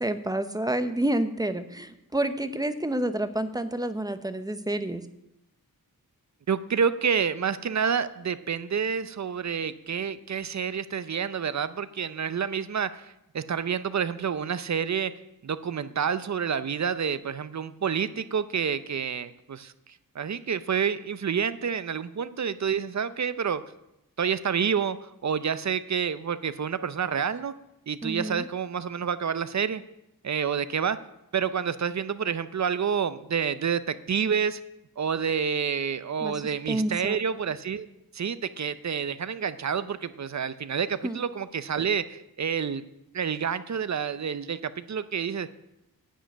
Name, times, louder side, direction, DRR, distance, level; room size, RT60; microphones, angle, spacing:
voice 1, 0.0-5.0 28.0-28.5 36.2-37.2 41.0-41.2, right 1 dB, 10° right, 10 dB, 0.7 m, -29 dB
voice 2, 6.5-15.1 15.4-19.7 20.2-23.6 24.2-25.0 25.2-27.5 27.9-29.8 30.2-31.0 31.3-34.6 35.0-37.9 38.1-42.8 43.1-45.5, right 7 dB, 50° right, 14 dB, 0.6 m, -28 dB
10.0 x 7.6 x 9.3 m, 0.88 s
wide cardioid pair, 145°, 36 cm